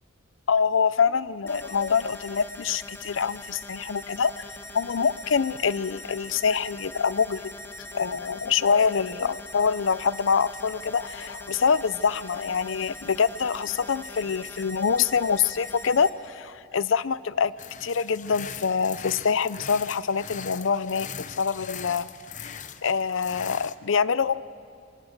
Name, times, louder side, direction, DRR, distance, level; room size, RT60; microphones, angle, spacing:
voice 1, 0.5-4.4 4.7-7.5 7.9-17.5 17.8-22.1 22.4-24.4, left 6 dB, 85° left, 17 dB, 0.6 m, -25 dB
sound 1, 1.5-16.1, left 1 dB, 15° left, 1.5 m, -42 dB
sound 2, 17.6-23.7, left 7 dB, 40° left, 0.8 m, -40 dB
26.5 x 23.5 x 6.6 m, 2.4 s
head